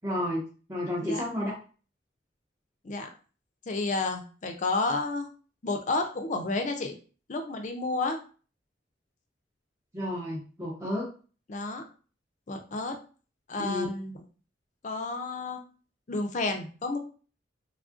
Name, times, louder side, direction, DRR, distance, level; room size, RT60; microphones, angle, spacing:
voice 1, 0.0-0.4 0.7-1.5 9.9-11.1 13.6-13.9, left 1 dB, 15° right, -5 dB, 0.6 m, -31 dB
voice 2, 3.7-5.3 5.6-7.0 7.3-8.2 11.5-11.8 12.5-13.0 13.5-14.1 14.8-15.6 16.1-17.0, left 3 dB, 45° left, 5 dB, 0.5 m, -31 dB
3.4 x 2.3 x 2.5 m, 0.37 s
head